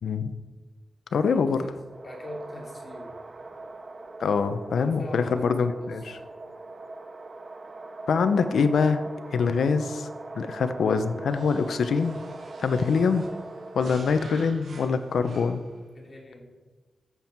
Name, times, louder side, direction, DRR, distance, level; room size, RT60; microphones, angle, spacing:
voice 1, 0.0-0.3 1.1-1.6 4.2-6.2 8.1-9.0 9.3-10.1 10.3-12.2 12.6-13.3 13.7-15.6, left 5 dB, 90° left, 10 dB, 0.8 m, -24 dB
voice 2, 1.3-3.5 4.8-6.1 15.9-16.6, left 1 dB, 35° left, -2 dB, 3.2 m, -42 dB
sound 1, 1.8-14.3, right 2 dB, 35° right, 0.8 m, -41 dB
sound 2, 11.2-15.8, right 3 dB, 80° right, 2.0 m, -49 dB
14.0 x 7.6 x 4.6 m, 1.3 s
wide cardioid pair, 100°, 0 cm